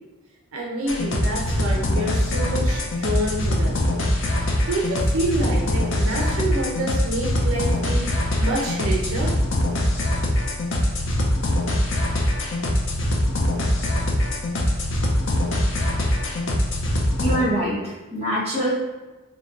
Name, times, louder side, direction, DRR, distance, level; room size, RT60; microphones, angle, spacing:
voice 1, 0.5-3.8 4.4-9.4, right 1 dB, 70° right, -3 dB, 0.6 m, -27 dB
sound 1, 0.9-17.4, left 1 dB, 60° left, 0.5 m, -23 dB
voice 2, 17.2-18.7, right 1 dB, 25° right, -7 dB, 1.0 m, -24 dB
4.1 x 2.2 x 3.6 m, 1.1 s
head